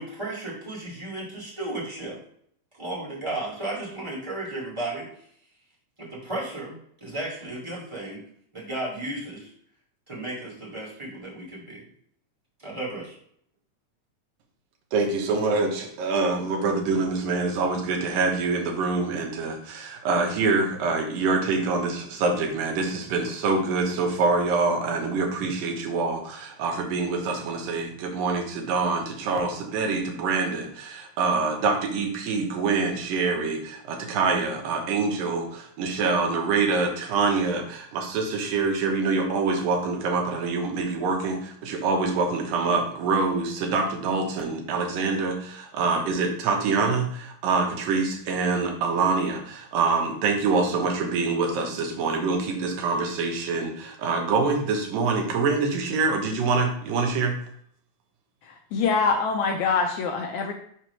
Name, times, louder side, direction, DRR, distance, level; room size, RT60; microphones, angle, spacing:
voice 1, 0.0-2.2 2.7-5.1 6.0-8.2 8.5-9.5 10.1-11.8 12.6-13.1, right 2 dB, 15° right, -6 dB, 1.3 m, -34 dB
voice 2, 14.9-57.3, right 4 dB, 80° right, 2 dB, 2.7 m, -25 dB
voice 3, 58.4-60.5, left 5 dB, 85° left, 3 dB, 1.7 m, -24 dB
5.9 x 3.0 x 5.7 m, 0.64 s
omnidirectional pair, 4.0 m